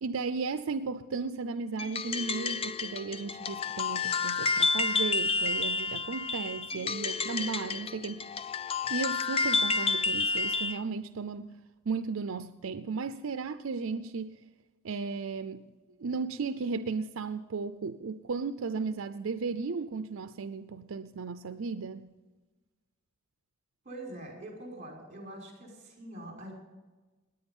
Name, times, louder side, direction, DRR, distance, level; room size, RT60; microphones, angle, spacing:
voice 1, 0.0-8.3 8.9-11.5 11.9-14.4 14.8-15.7 16.0-22.1, right 4 dB, 80° right, 0.5 m, -35 dB
sound 1, 1.8-10.8, left 4 dB, 30° left, 0.4 m, -30 dB
voice 2, 23.8-26.5, right 1 dB, 35° right, 5.4 m, -44 dB
19.0 x 9.9 x 5.5 m
head